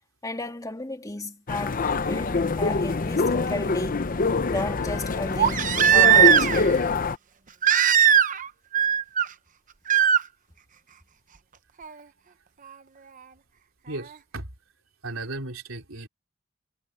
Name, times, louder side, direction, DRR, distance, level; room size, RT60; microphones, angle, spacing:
voice 1, 0.2-4.0 4.5-6.8, left 2 dB, 20° left, 2.2 m, -33 dB
sound 1, 1.5-7.2, left 4 dB, 45° left, 0.7 m, -25 dB
Crying sobbing, 2.6-2.7 5.4-6.7 7.6-8.5 8.7-9.3 9.9-10.2 11.8-11.9, right 9 dB, 40° right, 0.8 m, -18 dB
voice 2, 13.9-14.5 15.0-16.1, right 2 dB, 75° right, 3.9 m, -36 dB
head